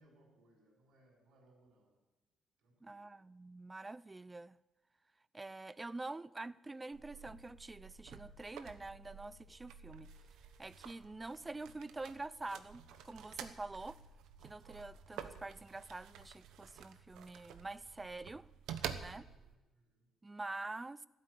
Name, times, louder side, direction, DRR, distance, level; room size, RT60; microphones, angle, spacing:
voice 1, 0.0-2.0 2.6-3.1 19.2-20.1, right 1 dB, 65° right, 5.8 m, -68 dB
voice 2, 2.8-4.6 5.3-10.1 10.6-14.0 14.4-18.5 18.9-19.3 20.2-21.1, right 2 dB, 15° right, 0.4 m, -46 dB
sound 1, 5.7-11.6, right 1 dB, 20° left, 3.3 m, -77 dB
sound 2, 6.9-19.5, right 8 dB, 90° right, 1.1 m, -50 dB
15.0 x 8.6 x 8.3 m
cardioid pair, 155°, 0 cm